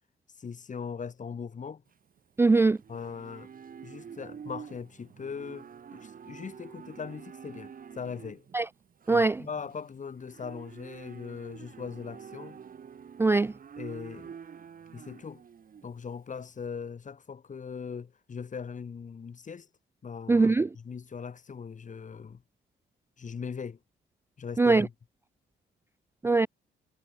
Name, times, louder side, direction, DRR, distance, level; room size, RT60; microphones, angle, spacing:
voice 1, 0.4-1.8 2.9-3.5 3.8-8.4 9.1-12.6 13.8-14.3 14.9-15.4 15.8-19.7 20.0-22.4 23.2-23.8 24.4-24.9, left 6 dB, 40° left, 2.4 m, -40 dB
Livestock farm animals working animals, 1.9-16.6, right 7 dB, 45° right, 1.9 m, -48 dB
voice 2, 2.4-2.8 8.5-8.7 9.1-9.4 13.2-13.5 20.3-20.7 24.6-24.9 26.2-26.5, right 3 dB, 10° right, 0.3 m, -21 dB
cardioid pair, 90°, 20 cm